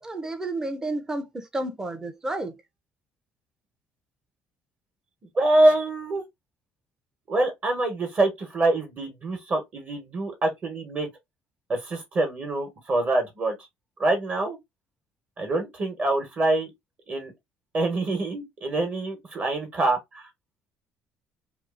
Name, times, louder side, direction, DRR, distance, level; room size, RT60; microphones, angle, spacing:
voice 1, 0.0-2.6, right 2 dB, 15° right, 0.5 m, -31 dB
voice 2, 5.3-6.2 7.3-11.1 11.7-13.5 14.0-14.6 15.4-16.7 17.1-17.3 17.7-20.3, right 2 dB, 35° right, 1.1 m, -25 dB
2.7 x 2.4 x 2.4 m
cardioid pair, 115°, 4 cm